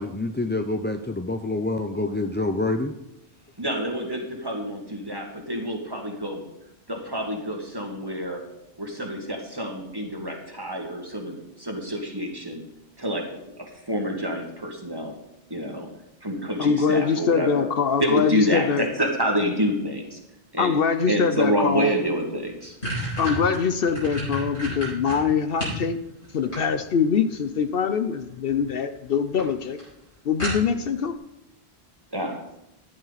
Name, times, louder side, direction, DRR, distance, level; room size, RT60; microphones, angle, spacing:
voice 1, 0.0-2.9, left 2 dB, 20° left, 5 dB, 0.3 m, -27 dB
voice 2, 3.6-6.4 6.9-8.4 8.8-12.6 13.0-15.1 15.5-15.9 16.2-17.7 18.0-20.2 20.5-20.7 21.1-22.8 32.1-32.4, equal, 20° right, 2 dB, 2.0 m, -27 dB
voice 3, 16.6-18.9 20.6-21.9 23.2-26.0 26.3-29.8 30.3-31.1, left 6 dB, 65° left, 9 dB, 0.8 m, -23 dB
sound 1, 22.0-22.1 22.4-25.8 26.2-27.1 28.2-28.6 29.0-29.1 29.4-29.5 29.8-29.9 30.4-31.0, equal, 85° left, 6.4 m, -31 dB
13.5 x 11.0 x 4.1 m, 0.86 s
omnidirectional pair, 1.1 m